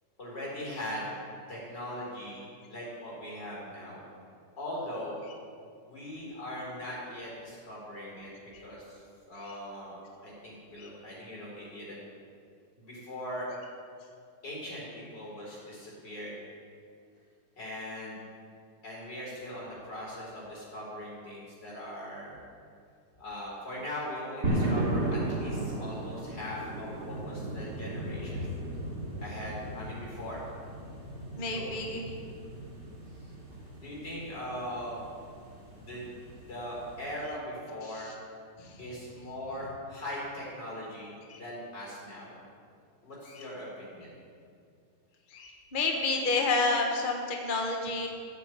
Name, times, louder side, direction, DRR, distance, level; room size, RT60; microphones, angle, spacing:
voice 1, 0.2-1.1 1.5-4.0 4.6-5.2 5.9-8.3 8.6-12.0 12.8-13.5 14.4-16.4 17.6-18.2 18.8-22.4 23.2-28.4 29.2-30.4 31.5-31.8 32.5-32.7 33.2-33.3 33.8-35.0 35.7-36.1 36.5-38.1 38.8-42.4 43.0-44.1, left 1 dB, 75° left, -5 dB, 5.3 m, -40 dB
sound 1, 24.4-37.3, right 1 dB, 65° right, 3.4 m, -36 dB
voice 2, 31.4-32.0 38.6-38.7 41.3-41.4 45.3-48.1, left 3 dB, 30° left, 1 dB, 1.3 m, -29 dB
14.5 x 8.3 x 8.1 m, 2.4 s
omnidirectional pair, 1.9 m